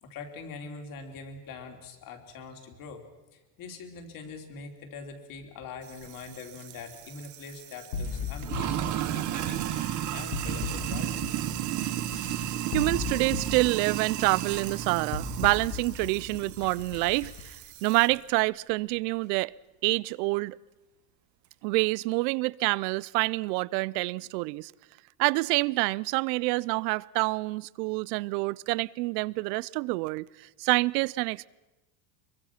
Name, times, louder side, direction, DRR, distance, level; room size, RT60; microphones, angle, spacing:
voice 1, 0.0-3.0 3.3-9.7 10.1-11.3, left 4 dB, 40° left, 3.1 m, -43 dB
Sink (filling or washing), 5.9-18.2, right 12 dB, 35° right, 1.1 m, -34 dB
sound 1, 7.9-17.4, left 6 dB, 70° left, 2.9 m, -37 dB
voice 2, 12.7-17.6 17.8-19.5 19.8-20.6 21.6-24.7 25.2-31.5, right 24 dB, 75° right, 0.7 m, -27 dB
24.0 x 23.5 x 5.8 m
cardioid pair, 165°, 49 cm